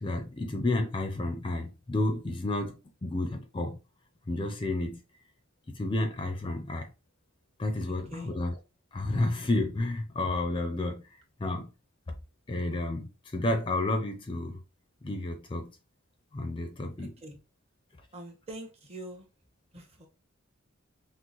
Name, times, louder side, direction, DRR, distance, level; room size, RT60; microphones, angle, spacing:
voice 1, 0.0-3.8 4.3-5.0 5.7-6.9 7.6-8.5 8.9-11.7 12.5-14.6 15.0-15.8 16.3-17.1, left 2 dB, 25° left, 0.4 m, -31 dB
voice 2, 17.0-17.4 18.1-19.3 19.7-20.1, right 1 dB, 30° right, 0.9 m, -44 dB
6.0 x 2.0 x 3.0 m
head